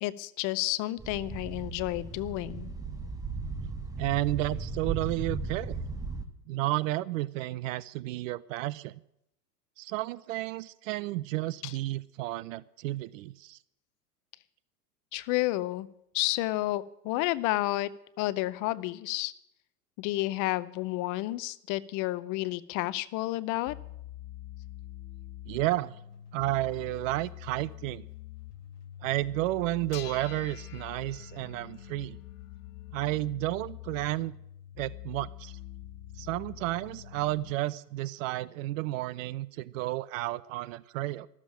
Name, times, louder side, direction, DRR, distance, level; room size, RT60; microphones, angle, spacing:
voice 1, 0.0-2.7 11.6-11.7 15.1-15.9 16.1-17.9 18.2-19.3 20.0-23.7, left 18 dB, 40° left, 17 dB, 0.6 m, -31 dB
sound 1, 1.0-6.2, right 4 dB, 10° right, 1.2 m, -36 dB
voice 2, 4.0-5.8 6.5-8.9 9.8-13.6 25.5-25.9 26.3-28.1 29.0-32.2 32.9-34.4 34.8-35.6 36.2-41.3, right 17 dB, 55° right, 19 dB, 0.6 m, -32 dB
sound 2, 23.7-37.5, left 13 dB, 85° left, 0.8 m, -45 dB
sound 3, 25.6-25.7 26.6-26.7 27.1-27.2 27.7-28.0 29.9-33.1, left 11 dB, 70° left, 1.1 m, -50 dB
13.0 x 7.4 x 10.0 m, 0.78 s
hypercardioid pair, 105°, 48 cm